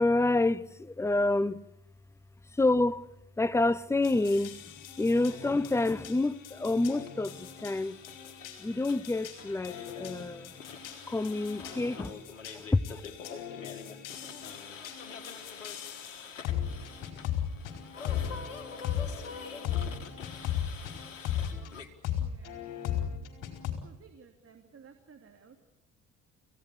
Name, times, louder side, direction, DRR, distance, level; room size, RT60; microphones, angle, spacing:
voice 1, 0.0-1.6 2.6-3.0 3.4-4.6 5.0-8.0 8.6-10.5 11.1-12.1 12.5-13.0, left 2 dB, 5° left, 0.9 m, -28 dB
sound 1, 4.0-21.7 22.0-23.7, left 9 dB, 55° left, 4.6 m, -38 dB
sound 2, 7.1-21.9, left 5 dB, 85° left, 1.9 m, -46 dB
voice 2, 22.2-22.6 23.8-25.6, right 6 dB, 35° right, 2.9 m, -55 dB
29.0 x 16.5 x 8.5 m
figure-of-eight pair, 50°, 37 cm